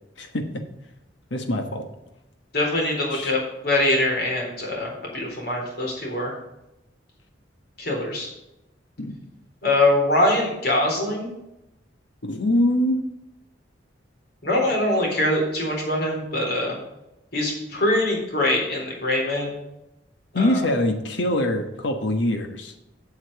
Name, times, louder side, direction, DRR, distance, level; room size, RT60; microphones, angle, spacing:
voice 1, 1.3-1.8 3.1-3.3 9.0-9.2 12.2-13.0 20.3-22.7, left 1 dB, 80° left, 5 dB, 1.3 m, -23 dB
voice 2, 2.5-6.3 7.8-8.3 9.6-11.3 14.4-16.8 17.3-19.5 20.3-20.6, left 1 dB, 60° left, -1 dB, 4.0 m, -23 dB
8.2 x 7.3 x 6.9 m, 0.90 s
head